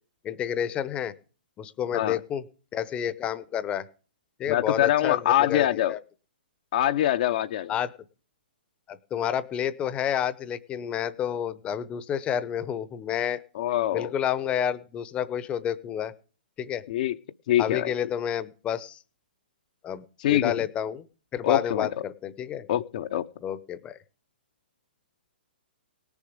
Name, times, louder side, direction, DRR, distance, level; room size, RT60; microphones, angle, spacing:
voice 1, 0.2-1.1 1.6-2.4 2.7-3.8 4.4-6.0 7.7-7.9 8.9-13.4 13.9-16.1 16.6-16.8 17.6-19.0 19.8-20.0 20.3-21.0 21.3-22.7 23.4-24.0, left 9 dB, 20° left, 16 dB, 0.8 m, -29 dB
voice 2, 4.5-6.0 6.7-7.7 13.5-14.1 16.9-17.2 17.5-17.9 20.2-20.6 21.4-21.9 22.7-23.2, left 12 dB, 50° left, 8 dB, 0.7 m, -24 dB
18.5 x 7.1 x 5.1 m, 0.37 s
hypercardioid pair, 130°, 6 cm